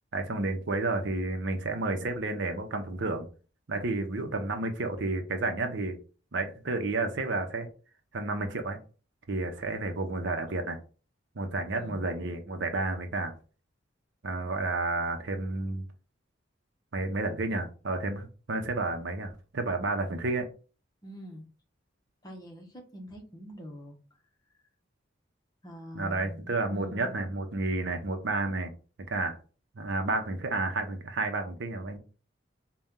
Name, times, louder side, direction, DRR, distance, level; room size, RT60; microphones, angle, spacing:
voice 1, 0.1-3.3 3.7-6.0 6.3-7.7 8.1-8.8 9.3-10.8 11.4-13.3 14.2-15.9 16.9-20.5 25.9-28.7 29.1-29.4 29.7-32.0, right 2 dB, 65° right, 6 dB, 0.7 m, -31 dB
voice 2, 3.9-4.4 11.7-12.1 21.0-21.5 22.2-24.2 25.6-27.1, equal, 20° left, 3 dB, 0.8 m, -45 dB
4.1 x 2.3 x 3.6 m, 0.37 s
head